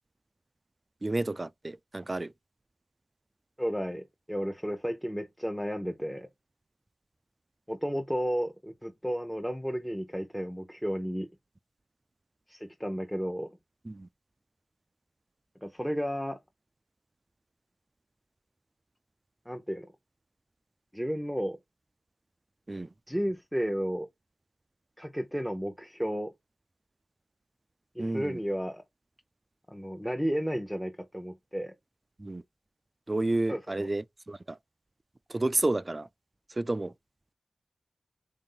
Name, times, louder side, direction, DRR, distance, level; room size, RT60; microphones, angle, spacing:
voice 1, 1.0-2.3 13.9-14.1 22.7-22.9 28.0-28.4 32.2-32.4 33.1-34.6 35.3-36.1 36.5-36.9, right 2 dB, 35° right, 0.3 m, -31 dB
voice 2, 3.6-6.3 7.7-11.3 12.5-13.5 15.6-16.4 19.5-19.9 20.9-21.6 23.1-24.1 25.0-26.3 27.9-28.8 29.7-31.7 33.5-33.9, equal, 5° left, 0.8 m, -33 dB
3.9 x 2.6 x 3.8 m
cardioid pair, 40°, 0 cm